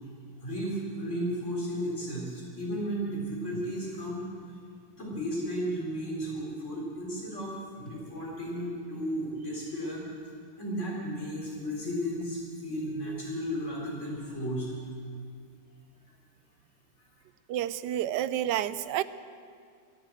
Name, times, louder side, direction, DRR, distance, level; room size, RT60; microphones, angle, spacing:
voice 1, 0.4-4.2 4.9-10.0 10.6-14.7, equal, 45° left, -4 dB, 4.1 m, -34 dB
voice 2, 17.5-19.0, right 12 dB, 90° right, 15 dB, 1.2 m, -29 dB
22.5 x 7.6 x 7.8 m, 2.2 s
omnidirectional pair, 1.8 m